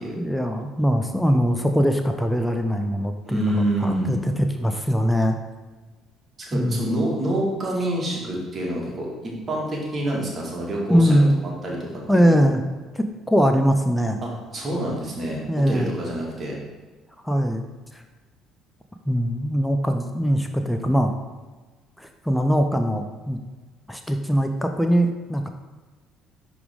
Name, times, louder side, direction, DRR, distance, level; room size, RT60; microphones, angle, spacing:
voice 1, 0.2-4.3 4.6-5.4 6.5-6.8 10.9-11.4 12.1-12.6 12.9-14.2 15.5-16.0 17.2-17.6 17.9-18.0 19.1-21.1 22.0-23.4 23.9-25.5, equal, 5° left, 5 dB, 0.7 m, -21 dB
voice 2, 3.2-4.2 6.4-11.2 11.6-12.4 14.2-15.4 15.7-16.6, right 1 dB, 35° right, -2 dB, 2.1 m, -27 dB
10.5 x 3.6 x 3.7 m, 1.3 s
figure-of-eight pair, 50°, 0 cm